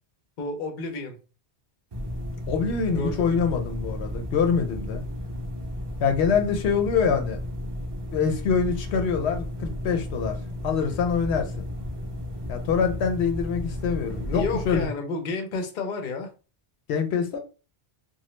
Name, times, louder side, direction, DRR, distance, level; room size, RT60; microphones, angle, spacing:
voice 1, 0.4-1.2 2.9-3.5 14.3-16.3, left 3 dB, 55° left, 0.7 m, -31 dB
sound 1, 1.9-14.9, left 1 dB, 30° right, 0.6 m, -33 dB
voice 2, 2.5-5.0 6.0-7.4 8.1-10.4 10.6-11.6 12.5-14.9 16.9-17.4, left 6 dB, 85° left, 0.8 m, -25 dB
2.9 x 2.2 x 3.1 m
omnidirectional pair, 1.1 m